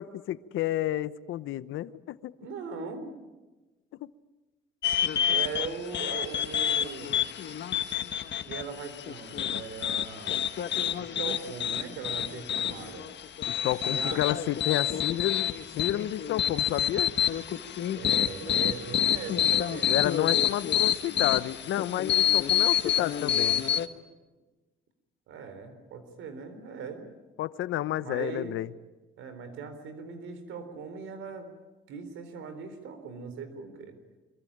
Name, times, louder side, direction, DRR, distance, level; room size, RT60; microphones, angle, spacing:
voice 1, 0.0-2.3 4.0-4.1 13.5-17.1 19.9-23.6 27.4-28.7, left 13 dB, 85° left, 15 dB, 0.9 m, -30 dB
voice 2, 2.4-3.2 5.3-7.2 8.5-10.4 11.0-13.1 13.8-14.2 17.9-20.0 25.3-27.1 28.0-28.5 29.2-31.5 31.9-34.0, right 5 dB, 90° right, 10 dB, 4.0 m, -39 dB
sound 1, 4.8-23.9, left 10 dB, 65° left, 1.4 m, -28 dB
25.5 x 23.5 x 8.8 m, 1.2 s
cardioid pair, 90°, 20 cm